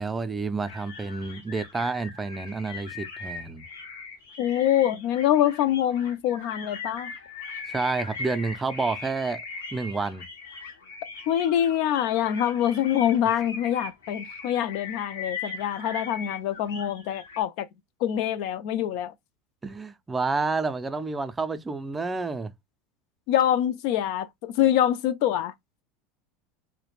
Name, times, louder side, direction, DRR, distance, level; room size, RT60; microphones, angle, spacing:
voice 1, 0.0-3.6 7.7-9.4 9.7-10.3 19.6-22.5, right 4 dB, 20° right, 0.4 m, -29 dB
sound 1, 0.6-17.4, left 4 dB, 90° left, 0.7 m, -40 dB
voice 2, 4.4-7.1 11.3-17.7 18.0-19.1 23.3-25.5, left 11 dB, 65° left, 0.4 m, -25 dB
2.4 x 2.1 x 2.9 m
hypercardioid pair, 95°, 0 cm